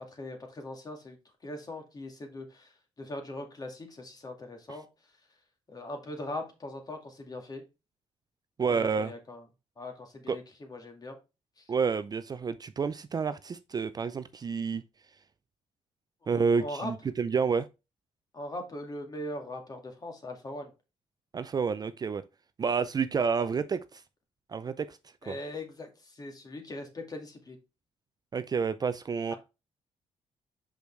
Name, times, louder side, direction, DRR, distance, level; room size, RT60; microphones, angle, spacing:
voice 1, 0.1-1.2 1.4-2.7 3.0-4.9 5.7-7.6 8.7-9.4 9.8-11.2 11.6-11.7 16.3-16.9 18.3-20.7 25.2-27.6, left 1 dB, 35° left, 2.0 m, -40 dB
voice 2, 8.6-9.1 10.3-10.4 11.7-14.8 16.3-17.7 21.3-22.2 22.6-24.0 24.5-25.0 25.3-25.4 28.3-29.3, right 5 dB, 35° right, 0.4 m, -29 dB
6.3 x 5.1 x 3.2 m
cardioid pair, 90°, 11 cm